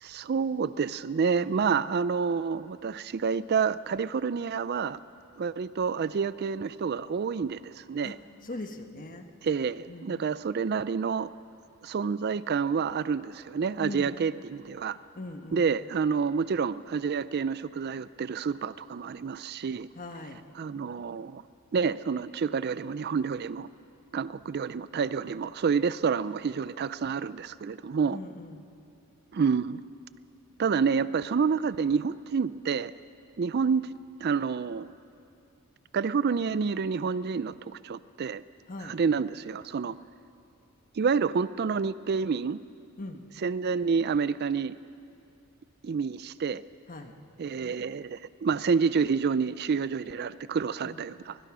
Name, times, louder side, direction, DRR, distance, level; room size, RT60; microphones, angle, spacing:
voice 1, 0.0-5.0 5.4-8.2 9.4-11.3 11.8-15.0 15.5-19.9 20.6-21.4 21.7-23.7 24.1-28.2 29.3-29.8 30.6-32.9 33.4-33.9 34.2-35.0 35.9-38.4 38.8-40.0 41.0-42.6 43.4-44.7 45.8-46.6 47.4-51.4, right 5 dB, 50° right, 16 dB, 0.4 m, -28 dB
voice 2, 1.4-1.8 8.0-8.1 8.4-9.3 9.9-10.3 13.8-14.2 15.2-15.7 19.9-20.4 28.1-28.6 38.7-39.0 43.0-43.2 46.9-47.1 50.8-51.0, left 2 dB, 40° left, 6 dB, 1.3 m, -40 dB
21.5 x 21.5 x 6.1 m, 2.6 s
head